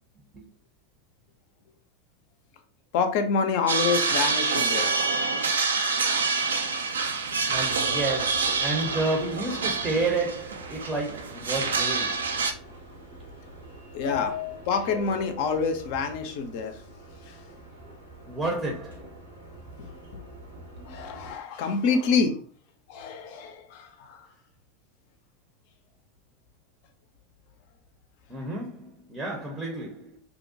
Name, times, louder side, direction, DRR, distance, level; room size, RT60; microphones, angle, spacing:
voice 1, 2.9-4.9 13.9-14.4 14.7-16.7 20.9-22.4 22.9-24.2, left 5 dB, 50° left, 0.5 m, -27 dB
sound 1, 3.7-12.5, right 4 dB, 70° right, 0.3 m, -27 dB
voice 2, 7.5-12.4 18.3-19.1 28.3-30.2, right 2 dB, 20° right, 0.6 m, -31 dB
Subway metro underground, 7.5-21.3, left 2 dB, 85° right, 1.0 m, -43 dB
2.7 x 2.1 x 2.6 m
figure-of-eight pair, 85°, 0 cm